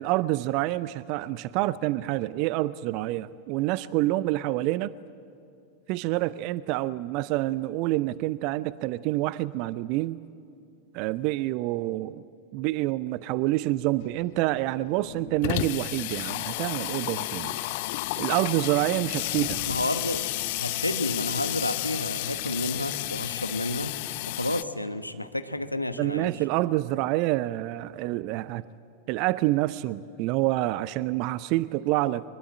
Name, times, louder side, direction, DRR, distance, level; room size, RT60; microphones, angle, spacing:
voice 1, 0.0-4.9 5.9-10.2 10.9-12.2 12.5-17.6 18.2-19.6 26.0-28.6 29.1-32.2, right 17 dB, 45° right, 19 dB, 0.5 m, -27 dB
Water tap faucet / Sink (filling or washing), 14.0-14.1 14.4-14.5 14.7-24.6, left 18 dB, 50° left, 0.7 m, -32 dB
voice 2, 19.7-20.3 20.6-23.9 24.3-26.3, left 1 dB, 85° left, 10 dB, 1.2 m, -30 dB
24.0 x 21.0 x 8.8 m, 2.7 s
figure-of-eight pair, 90°, 0 cm